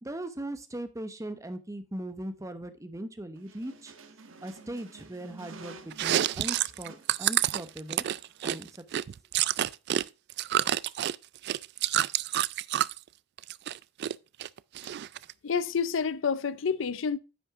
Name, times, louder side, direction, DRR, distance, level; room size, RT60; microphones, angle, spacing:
voice 1, 0.0-3.9 4.4-8.0 8.4-8.7, right 1 dB, 15° right, 0.8 m, -39 dB
sound 1, 3.4-8.5, right 3 dB, 90° right, 1.1 m, -51 dB
Chewing mastication, 5.9-10.0 10.3-13.0 13.4-14.1 14.4-15.3, right 12 dB, 55° right, 0.3 m, -28 dB
voice 2, 15.4-17.2, left 6 dB, 70° left, 0.5 m, -28 dB
9.8 x 6.1 x 3.5 m
head